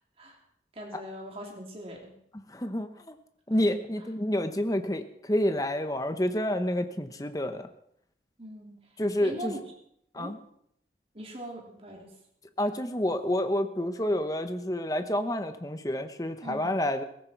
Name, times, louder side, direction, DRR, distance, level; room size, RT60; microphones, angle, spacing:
voice 1, 0.7-2.1 3.5-3.7 8.4-8.7 9.2-9.6 10.1-10.3 11.1-12.2 16.4-16.8, right 1 dB, 35° right, 0 dB, 3.4 m, -41 dB
voice 2, 2.3-3.1 3.5-7.7 9.0-9.5 10.1-10.4 12.6-17.0, left 1 dB, 20° left, 8 dB, 1.0 m, -29 dB
18.0 x 15.0 x 4.6 m, 0.72 s
head